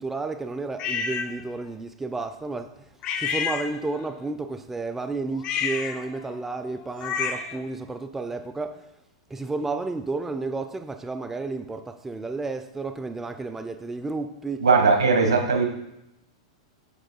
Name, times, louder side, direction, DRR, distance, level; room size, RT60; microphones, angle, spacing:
voice 1, 0.0-2.9 3.2-8.8 9.3-14.7, right 3 dB, 10° right, 9 dB, 0.4 m, -32 dB
sound 1, 0.8-1.3 3.0-4.1 5.4-7.6, left 6 dB, 35° left, 0.7 m, -30 dB
voice 2, 14.6-15.6, right 4 dB, 80° right, 2 dB, 1.4 m, -19 dB
7.8 x 7.4 x 2.2 m, 0.87 s
hypercardioid pair, 110°, 3 cm